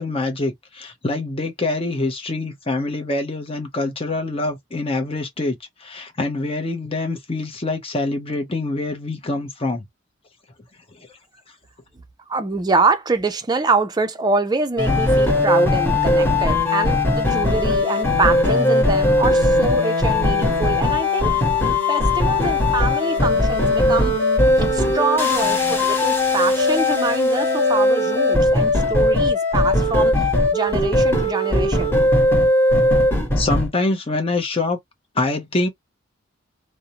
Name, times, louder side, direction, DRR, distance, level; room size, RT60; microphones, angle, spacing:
voice 1, 0.0-9.8 23.3-23.5 25.5-25.8 33.3-34.8 35.2-35.7, left 2 dB, 30° left, 0.7 m, -25 dB
voice 2, 12.3-21.3 21.9-24.2 24.6-30.2 30.5-32.0, right 3 dB, 20° right, 0.4 m, -24 dB
sound 1, 14.8-33.7, left 2 dB, 10° left, 1.2 m, -18 dB
2.6 x 2.1 x 2.8 m
head